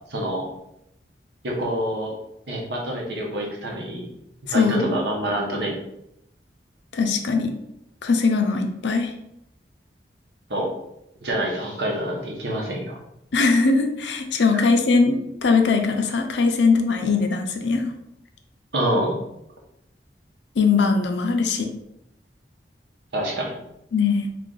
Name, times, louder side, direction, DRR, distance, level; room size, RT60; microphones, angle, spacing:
voice 1, 0.1-0.5 1.4-2.1 2.5-4.1 4.5-5.8 10.5-10.7 11.2-13.0 14.5-14.6 18.7-19.2 23.1-23.6, right 1 dB, 80° right, -1 dB, 0.9 m, -26 dB
voice 2, 4.5-5.0 6.9-7.5 8.0-9.1 13.3-17.9 20.6-21.7 23.9-24.3, left 4 dB, 85° left, 4 dB, 0.5 m, -20 dB
3.2 x 2.5 x 3.8 m, 0.81 s
head